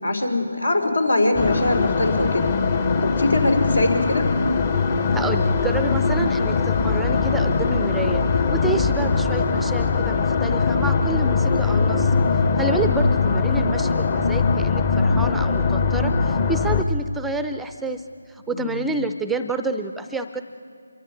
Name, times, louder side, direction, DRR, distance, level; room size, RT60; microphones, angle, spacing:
voice 1, 0.0-2.5 3.0-4.3 12.6-12.9 18.5-18.8, left 2 dB, 80° left, 6 dB, 3.5 m, -22 dB
sound 1, 1.3-16.8, left 4 dB, 30° left, 0.9 m, -21 dB
voice 2, 5.1-8.2 8.5-12.1 12.6-18.0 18.3-20.4, right 3 dB, 5° right, 8 dB, 0.5 m, -29 dB
26.5 x 23.5 x 5.2 m, 2.5 s
figure-of-eight pair, 155°, 0 cm